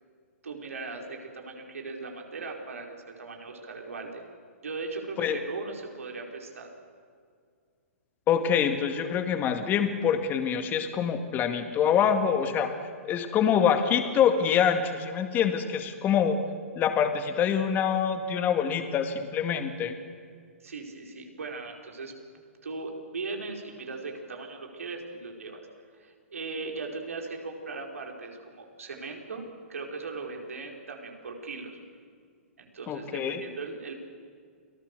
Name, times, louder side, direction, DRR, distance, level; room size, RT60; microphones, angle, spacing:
voice 1, 0.4-4.2 4.6-6.7 20.6-22.1 22.6-25.7 26.0-29.4 29.7-31.8 32.6-33.9, right 3 dB, 80° right, 1 dB, 4.9 m, -38 dB
voice 2, 8.3-12.7 13.0-16.4 16.8-19.9 32.9-33.4, left 8 dB, 25° left, 6 dB, 2.1 m, -25 dB
29.0 x 19.5 x 6.9 m, 2.1 s
hypercardioid pair, 125°, 8 cm